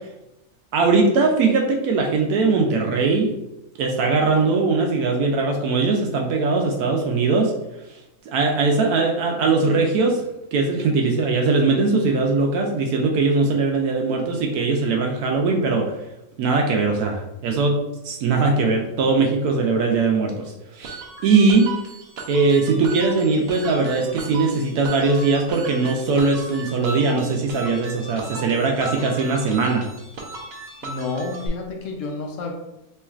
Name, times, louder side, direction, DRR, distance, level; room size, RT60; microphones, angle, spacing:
voice 1, 0.7-3.3 3.8-7.5 8.3-10.2 10.5-15.9 16.4-17.8 18.0-21.7 22.3-29.9, right 3 dB, 80° right, 1 dB, 1.1 m, -20 dB
sound 1, 20.8-31.5, right 3 dB, 55° right, 0.8 m, -36 dB
voice 2, 30.8-32.5, left 3 dB, 65° left, 2 dB, 0.9 m, -29 dB
4.4 x 3.0 x 2.3 m, 0.92 s
omnidirectional pair, 1.6 m